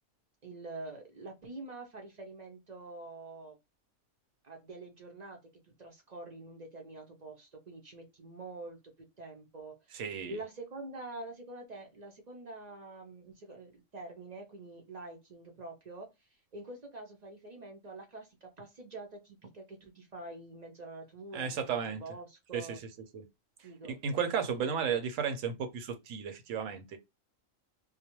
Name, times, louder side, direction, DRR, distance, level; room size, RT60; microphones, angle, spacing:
voice 1, 0.4-3.6 4.4-5.4 5.6-8.8 9.2-22.8 23.6-24.0, right 2 dB, 45° right, 0.5 m, -46 dB
voice 2, 9.9-10.4 21.3-22.0 22.5-22.8 23.1-23.2 24.0-27.0, right 7 dB, 75° right, 1.0 m, -33 dB
2.3 x 2.1 x 2.8 m
omnidirectional pair, 1.4 m